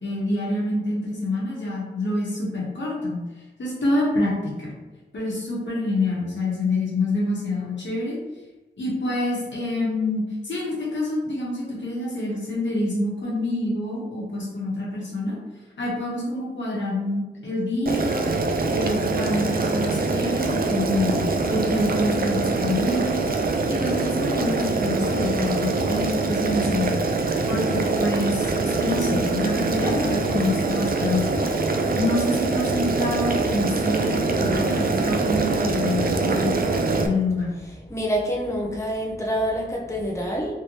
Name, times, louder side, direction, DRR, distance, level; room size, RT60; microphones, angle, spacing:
voice 1, 0.0-3.2 3.6-4.7 5.1-8.2 8.8-15.4 15.8-18.3 18.7-23.2 23.7-27.0 27.4-31.4 32.0-36.5 37.0-37.5, left 1 dB, 75° left, -5 dB, 1.2 m, -26 dB
Boiling, 17.9-37.1, right 3 dB, 50° right, 0.4 m, -24 dB
voice 2, 37.9-40.5, equal, 15° left, -2 dB, 0.7 m, -26 dB
3.2 x 2.9 x 2.8 m, 1.1 s
cardioid pair, 50°, 19 cm